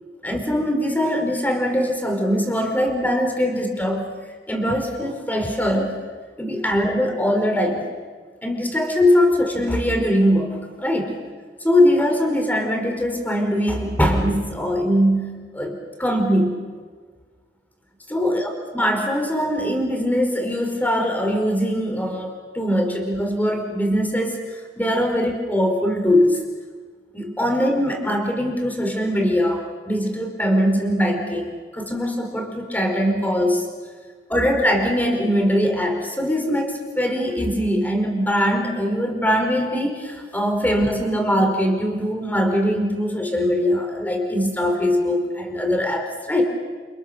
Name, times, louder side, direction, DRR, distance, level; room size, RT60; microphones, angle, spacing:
voice 1, 0.2-4.1 4.5-6.0 6.4-7.8 8.4-11.1 11.6-16.7 18.1-26.4 27.1-33.7 34.3-46.4, equal, 10° left, 3 dB, 4.8 m, -21 dB
28.5 x 28.5 x 7.0 m, 1.5 s
head